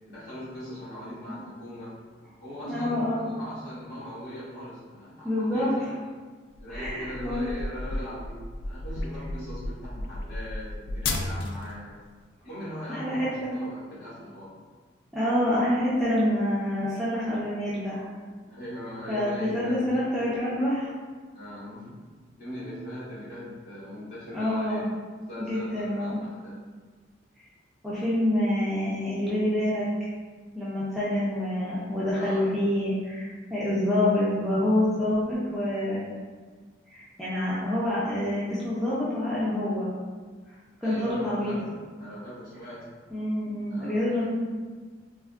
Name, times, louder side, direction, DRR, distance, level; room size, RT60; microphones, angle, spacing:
voice 1, 0.1-2.0 2.4-6.0 6.6-12.0 12.4-14.6 18.5-20.1 21.3-22.0 22.3-24.9 25.3-26.6 32.1-32.5 40.8-42.9 43.7-44.3, equal, 55° left, -12 dB, 1.5 m, -40 dB
voice 2, 2.6-3.3 5.2-5.7 6.7-7.5 12.9-13.6 15.1-18.0 19.1-20.9 24.3-24.9 25.4-26.2 27.8-29.9 30.5-36.0 36.9-39.9 40.8-41.5 43.1-44.2, left 1 dB, ahead, -10 dB, 0.4 m, -27 dB
sound 1, 6.6-11.7, left 2 dB, 70° left, 0.3 m, -33 dB
3.4 x 2.1 x 2.3 m, 1.5 s
head